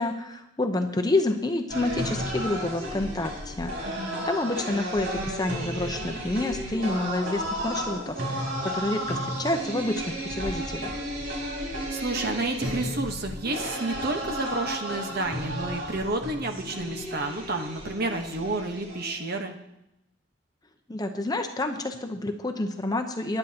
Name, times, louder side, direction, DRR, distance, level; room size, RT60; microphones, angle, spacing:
voice 1, 0.0-11.0 20.9-23.4, left 2 dB, 20° left, 5 dB, 0.8 m, -29 dB
sound 1, 1.7-19.4, equal, 65° right, 3.9 m, -33 dB
voice 2, 3.8-4.3 11.9-19.5, right 2 dB, 50° right, 4 dB, 1.2 m, -30 dB
19.5 x 10.0 x 2.9 m, 0.87 s
head